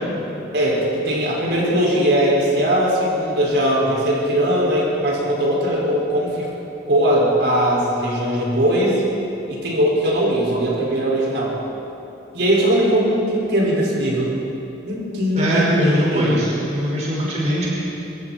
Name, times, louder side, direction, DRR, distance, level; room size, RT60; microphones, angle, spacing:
voice 1, 0.5-6.5 6.9-9.0 9.5-11.6 12.3-14.3 14.8-16.4, equal, 65° right, -5 dB, 6.2 m, -20 dB
voice 2, 15.4-17.7, equal, 35° right, -6 dB, 5.8 m, -21 dB
26.5 x 26.5 x 4.6 m, 2.9 s
head